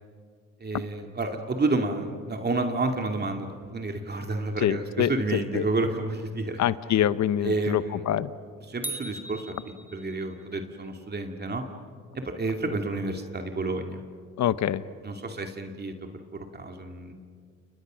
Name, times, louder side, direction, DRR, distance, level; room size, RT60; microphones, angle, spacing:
voice 1, 0.6-6.6 7.4-8.0 8.6-11.6 12.1-14.0 15.0-15.9 16.5-17.1, right 2 dB, 35° right, 4 dB, 2.4 m, -30 dB
voice 2, 4.6-5.6 6.6-8.3 14.4-14.8, left 11 dB, 65° left, 15 dB, 1.0 m, -25 dB
sound 1, 8.8-10.4, right 1 dB, 5° right, 1.4 m, -39 dB
30.0 x 29.0 x 6.3 m, 2.1 s
cardioid pair, 90°, 30 cm